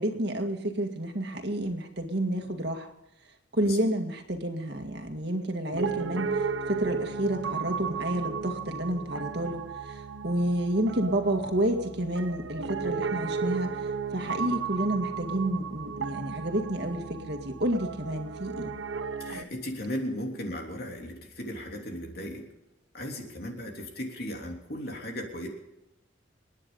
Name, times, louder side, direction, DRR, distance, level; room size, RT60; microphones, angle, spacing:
voice 1, 0.0-2.9 3.5-18.8, right 1 dB, 60° right, 4 dB, 2.0 m, -30 dB
Piano, 5.7-19.4, right 5 dB, 85° right, 0.8 m, -34 dB
voice 2, 19.2-22.4 22.9-25.5, equal, 55° left, 1 dB, 3.3 m, -36 dB
29.0 x 9.8 x 4.0 m, 0.95 s
head